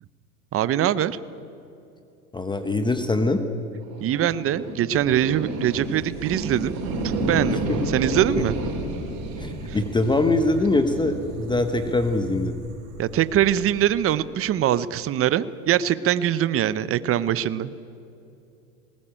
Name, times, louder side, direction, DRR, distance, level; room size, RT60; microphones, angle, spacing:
voice 1, 0.5-1.2 4.0-6.7 7.3-7.6 7.9-8.5 9.7-9.8 13.0-17.7, right 11 dB, 30° right, 16 dB, 0.8 m, -23 dB
voice 2, 2.3-3.4 7.7-7.8 8.4-8.5 9.4-12.6, left 2 dB, 10° left, 8 dB, 1.1 m, -23 dB
sound 1, 3.8-14.2, right 2 dB, 55° right, 4.7 m, -31 dB
19.5 x 19.5 x 8.9 m, 2.7 s
supercardioid pair, 110°, 44 cm